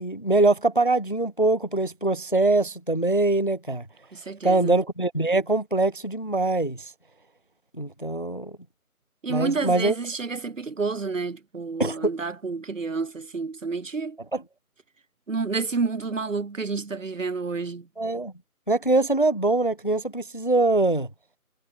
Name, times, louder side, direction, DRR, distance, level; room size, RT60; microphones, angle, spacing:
voice 1, 0.0-3.9 4.4-6.9 7.7-8.6 9.3-10.0 11.8-12.1 14.3-14.4 18.0-18.3 18.7-21.1, right 2 dB, 35° left, 0.5 m, -23 dB
voice 2, 4.1-4.8 9.2-14.2 15.3-17.9, right 4 dB, 55° right, 2.0 m, -29 dB
figure-of-eight pair, 175°, 44 cm